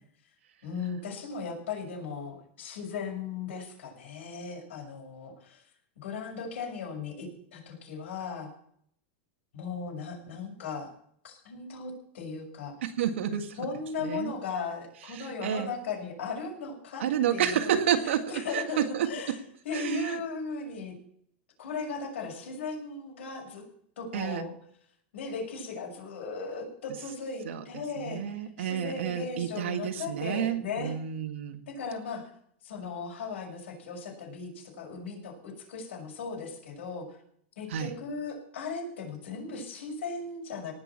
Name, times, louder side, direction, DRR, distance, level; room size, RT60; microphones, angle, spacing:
voice 1, 0.6-5.6 6.0-8.5 9.5-10.9 11.2-12.8 13.6-17.0 17.3-17.8 18.0-20.9 21.6-23.6 24.0-24.5 25.1-30.9 31.7-32.3 32.6-37.2 37.6-40.7, left 4 dB, 90° left, 1 dB, 6.3 m, -37 dB
voice 2, 12.8-13.6 14.0-14.3 15.1-15.7 17.0-19.4 19.7-20.2 24.1-24.5 27.4-27.6 28.0-31.6 37.7-37.9, right 9 dB, 85° right, 6 dB, 1.9 m, -30 dB
18.5 x 6.3 x 7.4 m, 0.65 s
supercardioid pair, 165°, 6 cm